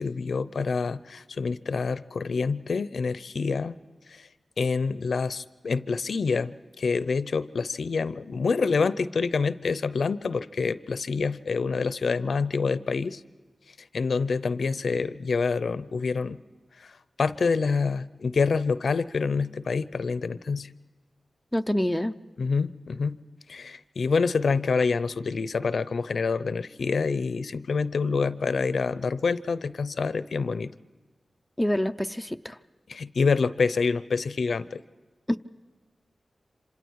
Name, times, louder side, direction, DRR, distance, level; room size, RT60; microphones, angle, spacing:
voice 1, 0.0-3.7 4.1-4.3 4.6-13.2 13.9-16.4 16.8-16.9 17.2-20.7 22.4-23.2 23.5-30.7 32.9-34.8, left 4 dB, 70° left, 15 dB, 0.6 m, -27 dB
voice 2, 21.5-22.2 31.6-32.6 35.3-35.4, left 1 dB, 5° left, 7 dB, 0.6 m, -26 dB
27.0 x 26.5 x 4.7 m, 1.3 s
wide cardioid pair, 125°, 0 cm